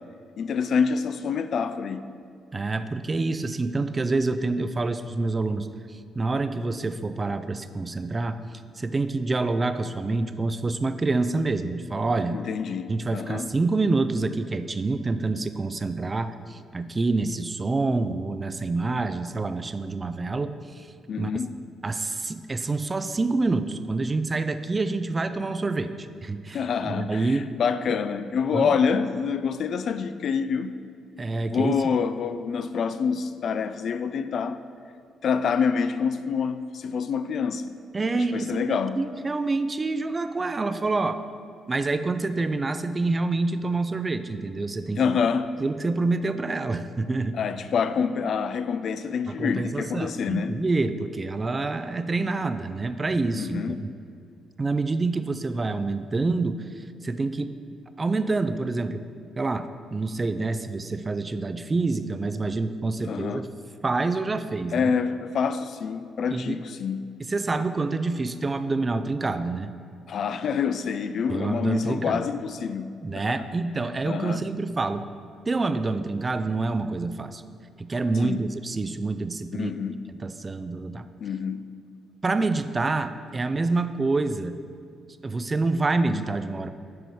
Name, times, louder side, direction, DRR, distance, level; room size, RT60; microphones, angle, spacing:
voice 1, 0.4-2.1 12.3-13.5 21.1-21.5 26.5-30.8 31.5-34.6 35.2-37.7 38.1-39.0 45.0-45.5 47.3-50.6 53.3-53.8 63.1-63.4 64.7-67.1 70.1-73.3 74.1-74.4 78.2-78.5 79.6-80.0 81.2-81.7, left 6 dB, 60° left, 11 dB, 0.3 m, -27 dB
voice 2, 2.5-12.4 12.9-20.9 21.2-21.3 21.8-27.5 28.5-28.8 31.2-31.8 37.9-41.2 41.7-45.1 45.6-47.4 49.3-53.9 54.6-59.0 59.4-63.5 63.8-64.9 66.3-66.6 67.2-69.7 71.3-72.3 73.0-75.1 75.5-77.4 77.8-79.7 80.2-81.1 82.2-84.6 85.2-86.7, right 3 dB, 25° right, 10 dB, 0.4 m, -27 dB
7.7 x 4.7 x 5.4 m, 2.3 s
cardioid pair, 90°, 0 cm